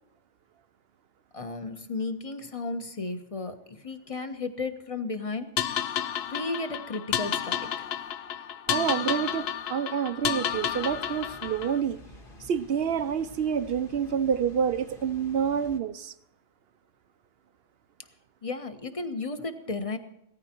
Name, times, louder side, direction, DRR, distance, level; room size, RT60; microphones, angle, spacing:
voice 1, 1.3-5.8 6.3-7.8 18.4-20.0, left 3 dB, 25° left, 8 dB, 1.3 m, -34 dB
sound 1, 5.6-11.8, left 9 dB, 60° left, 0.8 m, -31 dB
voice 2, 8.7-12.0 12.4-16.1, right 7 dB, 55° right, 13 dB, 0.8 m, -28 dB
Water, 10.5-15.8, left 1 dB, 45° left, 1.8 m, -50 dB
17.5 x 14.0 x 4.5 m, 0.82 s
omnidirectional pair, 1.3 m